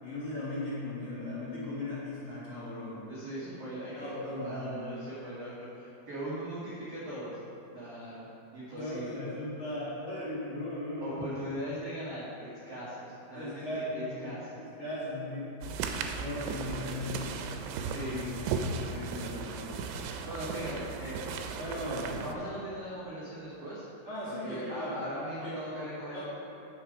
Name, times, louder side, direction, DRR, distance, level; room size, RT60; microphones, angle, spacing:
voice 1, 0.0-3.0 3.9-4.8 8.7-11.3 13.3-14.3 14.6-15.5 16.1-17.2 17.9-18.2 18.6-19.8 21.6-22.2 24.1-24.9 25.4-25.6 26.1-26.2, left 1 dB, 45° left, -11 dB, 2.7 m, -37 dB
voice 2, 3.1-7.4 7.7-8.3 8.5-9.2 11.0-14.6 17.9-18.5 20.3-21.3 22.2-23.8 24.3-26.2, right 1 dB, 60° right, -9 dB, 1.6 m, -39 dB
sound 1, 15.6-22.4, right 5 dB, 85° right, 2.7 m, -36 dB
9.1 x 6.4 x 5.0 m, 2.9 s
omnidirectional pair, 4.7 m